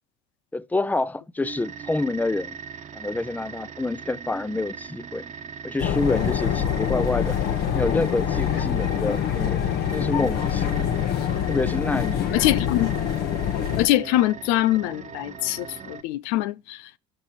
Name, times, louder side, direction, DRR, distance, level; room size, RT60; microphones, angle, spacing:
voice 1, 0.5-2.6 2.9-5.2 5.6-7.4 7.7-9.6 9.9-10.9 11.5-12.2, left 2 dB, 10° left, 0.7 m, -27 dB
sound 1, 1.4-16.0, right 7 dB, 45° right, 1.4 m, -40 dB
sound 2, 5.8-13.9, left 9 dB, 65° left, 1.5 m, -25 dB
voice 2, 12.3-12.9 13.8-16.9, left 15 dB, 85° left, 0.6 m, -23 dB
12.5 x 4.5 x 7.1 m
supercardioid pair, 90°, 18 cm